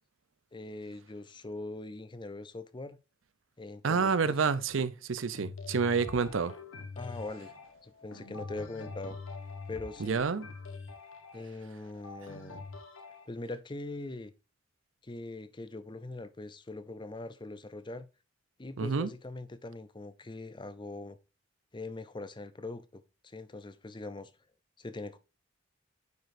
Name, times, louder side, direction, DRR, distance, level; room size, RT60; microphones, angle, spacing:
voice 1, 0.5-3.0 3.6-4.3 7.0-7.5 7.8-9.2 9.7-10.2 11.3-12.6 13.3-14.3 15.0-18.1 18.6-21.2 21.7-24.3 24.8-25.2, left 2 dB, 25° left, 0.5 m, -42 dB
voice 2, 3.8-6.6 10.0-10.5 18.8-19.1, right 5 dB, 85° right, 0.6 m, -29 dB
sound 1, 5.3-13.3, left 3 dB, 85° left, 1.2 m, -45 dB
9.4 x 5.1 x 2.6 m
head